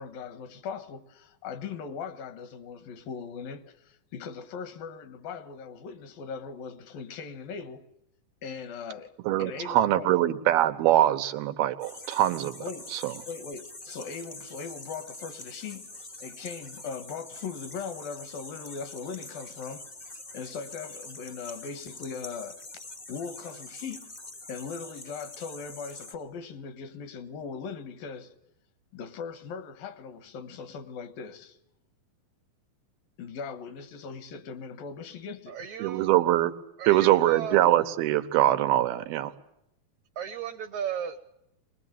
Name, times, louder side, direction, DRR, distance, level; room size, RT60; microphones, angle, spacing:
voice 1, 0.0-7.9 8.4-9.1 9.4-10.1 12.6-12.9 13.3-19.9 20.3-22.6 23.1-24.1 24.5-28.3 28.9-31.6 33.2-35.6, left 5 dB, 75° left, 3.1 m, -39 dB
voice 2, 9.2-12.6 12.9-13.1 35.8-36.5 36.9-39.3, right 13 dB, 90° right, 3.1 m, -23 dB
sound 1, 11.8-26.1, left 2 dB, 55° left, 0.4 m, -45 dB
voice 3, 35.5-36.1 36.8-37.7 40.2-41.2, right 8 dB, 65° right, 1.9 m, -35 dB
24.0 x 20.5 x 9.0 m
omnidirectional pair, 4.3 m